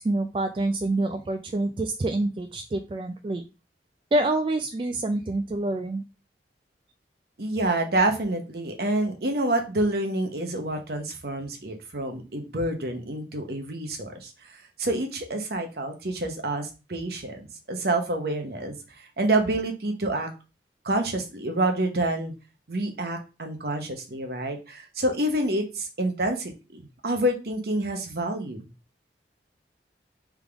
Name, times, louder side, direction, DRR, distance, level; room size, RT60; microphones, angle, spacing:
voice 1, 0.0-3.4 4.1-6.0, right 2 dB, 30° right, 5 dB, 0.3 m, -27 dB
voice 2, 7.4-17.4 17.7-18.8 19.2-20.3 20.8-22.3 22.7-28.6, right 1 dB, 60° right, 4 dB, 0.9 m, -28 dB
3.6 x 3.5 x 3.4 m, 0.30 s
head